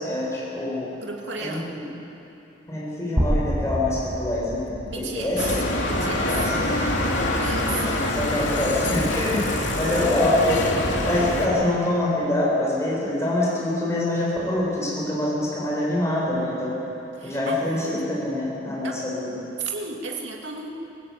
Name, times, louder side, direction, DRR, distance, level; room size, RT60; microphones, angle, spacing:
voice 1, 0.0-0.9 1.4-1.8 2.7-5.6 6.2-6.6 7.7-9.4 9.7-16.8 17.2-19.3, left 1 dB, 15° left, -5 dB, 6.9 m, -25 dB
voice 2, 1.0-1.7 4.9-5.4 5.8-6.4 7.4-8.0 9.8-10.2 17.1-18.0 18.8-19.0 19.6-20.7, right 4 dB, 65° right, 0 dB, 2.7 m, -34 dB
sound 1, 3.2-7.1, equal, 20° right, 6.2 m, -29 dB
Bicycle, 5.4-11.5, left 1 dB, 70° left, 3.1 m, -25 dB
25.0 x 17.0 x 8.6 m, 2.9 s
head